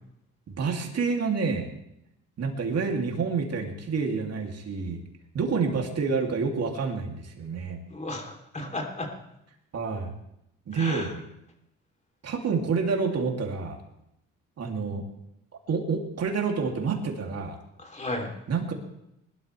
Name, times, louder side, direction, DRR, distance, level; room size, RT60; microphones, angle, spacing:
voice 1, 0.6-1.7 2.4-5.0 5.3-7.8 9.7-10.1 10.7-11.1 12.2-13.8 14.6-15.0 15.7-17.6 18.5-18.7, right 5 dB, 55° right, 1 dB, 2.8 m, -28 dB
voice 2, 7.9-9.1 10.7-11.1 17.8-18.3, left 2 dB, 25° left, 2 dB, 3.2 m, -34 dB
21.0 x 12.5 x 3.4 m, 0.81 s
cardioid pair, 90°, 30 cm